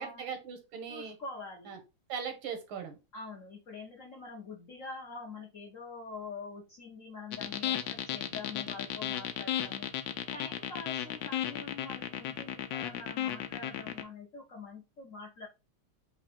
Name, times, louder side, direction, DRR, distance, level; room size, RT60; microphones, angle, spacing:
voice 1, 0.0-1.2 1.7-1.8 2.1-3.0, right 6 dB, 80° right, 6 dB, 1.9 m, -39 dB
voice 2, 0.9-1.8 3.1-9.9 10.3-15.5, left 4 dB, 50° left, -2 dB, 1.0 m, -45 dB
sound 1, 7.3-14.0, left 11 dB, 75° left, 1.3 m, -34 dB
4.8 x 2.4 x 4.2 m, 0.27 s
omnidirectional pair, 2.3 m